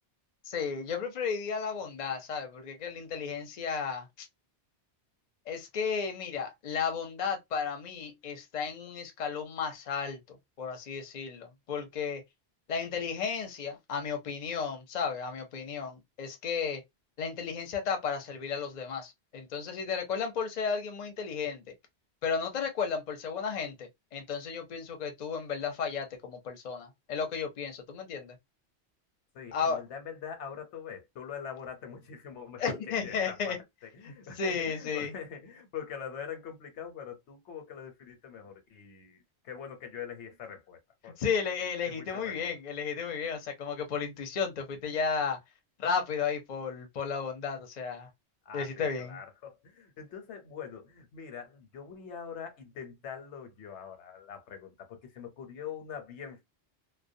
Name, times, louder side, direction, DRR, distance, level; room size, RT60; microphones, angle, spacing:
voice 1, 0.4-4.3 5.5-12.2 12.7-16.8 17.2-21.6 22.2-28.3 29.5-29.8 32.6-33.6 34.0-35.1 41.0-45.4 45.8-48.1 48.5-49.2, left 6 dB, 45° left, 0.6 m, -33 dB
voice 2, 29.3-33.6 33.8-41.5 41.8-42.6 48.4-56.4, left 7 dB, 85° left, 1.0 m, -43 dB
2.2 x 2.2 x 2.6 m
omnidirectional pair, 1.2 m